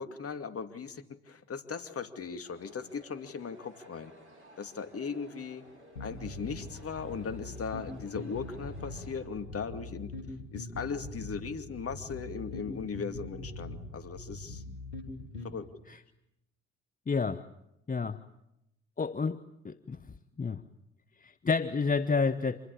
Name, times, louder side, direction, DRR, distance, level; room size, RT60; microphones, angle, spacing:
voice 1, 0.0-4.1 4.6-5.6 6.0-10.1 10.5-14.6 15.4-15.7, left 5 dB, 45° left, 9 dB, 2.5 m, -38 dB
sound 1, 2.4-9.3, right 1 dB, 90° right, 4.6 m, -56 dB
sound 2, 6.0-15.5, left 2 dB, 90° left, 3.0 m, -42 dB
voice 2, 17.1-17.4 17.9-18.2 19.0-20.0 20.4-20.6 21.2-22.6, left 4 dB, 25° left, 13 dB, 1.0 m, -30 dB
27.0 x 21.0 x 8.7 m, 0.84 s
figure-of-eight pair, 45°, 33 cm